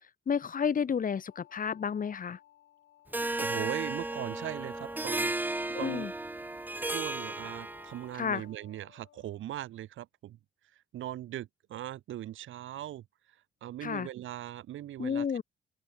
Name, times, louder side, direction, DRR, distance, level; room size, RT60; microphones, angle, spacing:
voice 1, 0.3-2.4 5.7-6.1 8.2-8.4 13.8-14.1 15.0-15.4, left 7 dB, 45° left, 1.7 m, -31 dB
sound 1, 1.3-9.4, left 12 dB, 75° left, 6.7 m, -59 dB
Harp, 3.1-8.1, right 2 dB, 10° right, 0.6 m, -34 dB
voice 2, 3.4-6.1 6.8-10.4 10.9-13.0 13.6-15.3, right 13 dB, 80° right, 2.9 m, -40 dB
open air
cardioid pair, 90°, 20 cm